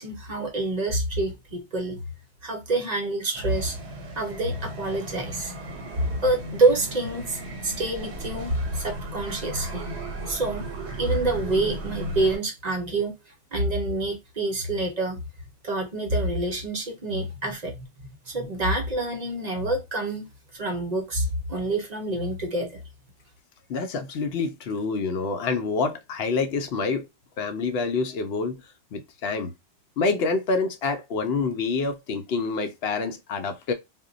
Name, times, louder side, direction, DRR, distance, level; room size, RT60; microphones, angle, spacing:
voice 1, 0.0-2.0 2.4-3.8 4.2-5.5 6.2-9.8 10.3-10.6 11.0-13.1 13.5-15.2 15.6-17.8 18.3-20.3 20.5-22.8, right 2 dB, 45° right, 0.7 m, -27 dB
sound 1, 3.3-12.4, right 1 dB, 75° right, 1.0 m, -36 dB
voice 2, 23.7-27.1 27.4-28.6 28.9-29.5 30.0-33.7, left 4 dB, 70° left, 0.8 m, -27 dB
2.2 x 2.1 x 3.7 m
omnidirectional pair, 1.1 m